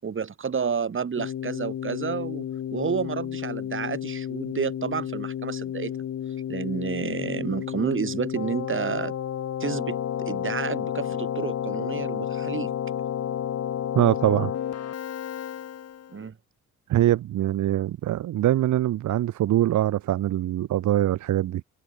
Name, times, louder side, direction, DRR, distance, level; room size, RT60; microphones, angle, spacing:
voice 1, 0.0-2.5 2.7-6.0 6.5-9.1 9.6-12.7 16.1-16.4, right 6 dB, 40° right, 7.2 m, -30 dB
Keyboard (musical), 1.2-16.2, left 10 dB, 55° left, 1.6 m, -31 dB
voice 2, 13.9-14.5 16.9-21.6, right 13 dB, 75° right, 1.7 m, -23 dB
cardioid pair, 90°, 30 cm